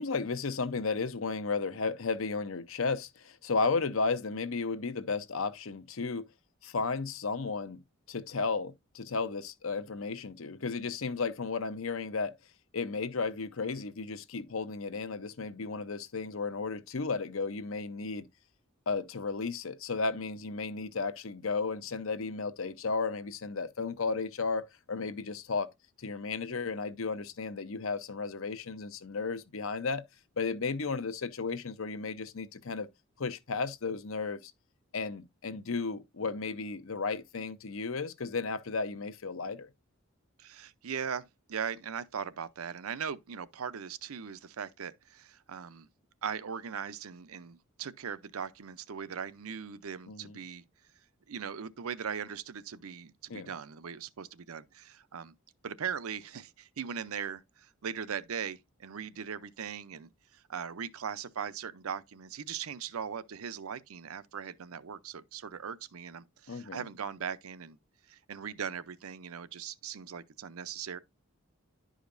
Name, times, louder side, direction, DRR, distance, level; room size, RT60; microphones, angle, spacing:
voice 1, 0.0-6.3 6.6-7.8 8.1-12.3 12.7-18.2 18.9-25.7 26.0-30.0 30.4-32.9 33.2-34.5 34.9-39.7 50.1-50.4 53.3-53.5 66.5-66.8, left 4 dB, 70° left, 0.7 m, -34 dB
voice 2, 40.4-45.9 46.2-50.6 51.3-55.3 55.6-67.8 68.1-71.0, right 7 dB, 85° right, 0.6 m, -39 dB
11.0 x 5.0 x 2.5 m
head